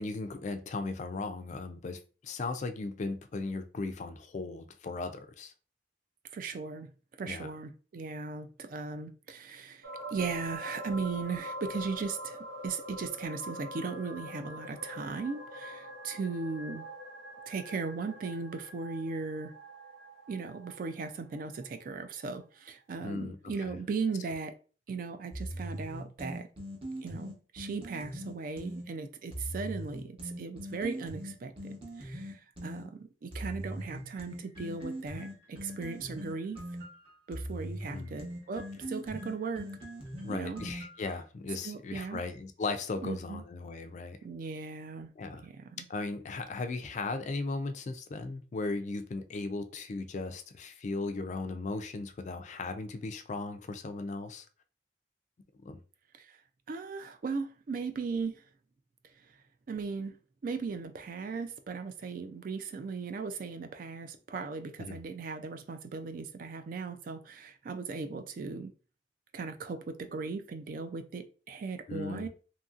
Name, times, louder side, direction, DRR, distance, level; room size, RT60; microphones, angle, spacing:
voice 1, 0.0-5.5 7.3-7.5 23.0-23.4 23.6-23.7 37.9-38.1 40.2-44.2 45.2-45.5 45.9-54.5 55.6-55.8 64.8-65.0 71.9-72.3, left 3 dB, 40° left, 0.3 m, -37 dB
voice 2, 6.3-6.9 7.2-16.9 17.5-19.5 20.3-24.6 24.9-26.5 27.0-36.6 37.3-39.8 40.3-40.6 41.6-42.2 43.0-43.4 44.2-45.1 45.4-45.9 56.1-56.4 56.7-58.4 59.2-59.4 59.7-68.7 69.3-72.3, right 4 dB, 50° right, 0.3 m, -37 dB
sound 1, 9.8-21.6 22.0-22.1, equal, 85° right, 0.7 m, -44 dB
sound 2, 25.3-28.9 29.3-32.9 33.3-41.1, equal, 30° right, 0.8 m, -41 dB
2.8 x 2.6 x 2.4 m
head